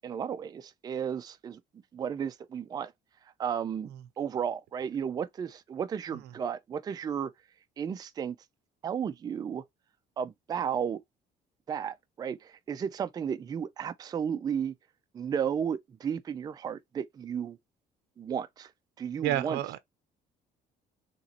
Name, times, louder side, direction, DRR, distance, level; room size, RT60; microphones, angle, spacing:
voice 1, 0.0-1.6 1.9-2.9 3.4-3.9 4.2-7.3 7.8-8.4 8.8-9.6 10.2-11.0 11.7-14.7 15.1-17.6 18.2-18.7 19.0-19.6, right 8 dB, 25° right, 0.3 m, -33 dB
voice 2, 19.2-19.8, right 13 dB, 85° right, 0.5 m, -30 dB
4.0 x 2.9 x 2.8 m
cardioid pair, 150°, 17 cm